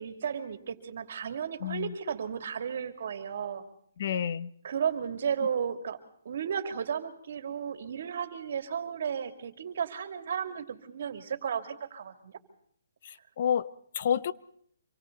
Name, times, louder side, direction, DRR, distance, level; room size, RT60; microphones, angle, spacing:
voice 1, 0.0-3.6 4.6-6.0 6.2-12.3, right 7 dB, 55° right, 2.9 m, -34 dB
voice 2, 1.6-1.9 4.0-4.5 13.0-14.3, left 8 dB, 45° left, 0.9 m, -30 dB
26.5 x 24.5 x 4.1 m
hypercardioid pair, 165°, 0 cm